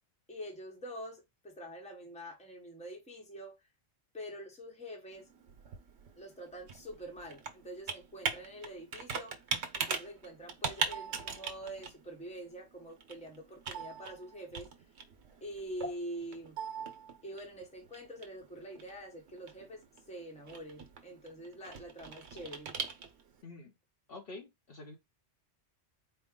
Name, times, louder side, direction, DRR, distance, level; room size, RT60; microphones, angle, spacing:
voice 1, 0.3-3.6 4.1-5.3 6.1-9.4 9.7-14.7 15.4-16.6 17.2-22.7, equal, 5° left, 1.0 m, -45 dB
Computer keyboard, 5.1-23.4, right 5 dB, 75° right, 1.1 m, -41 dB
voice 2, 23.4-23.7 24.1-25.0, left 2 dB, 60° left, 1.1 m, -47 dB
4.5 x 2.2 x 3.7 m
omnidirectional pair, 1.2 m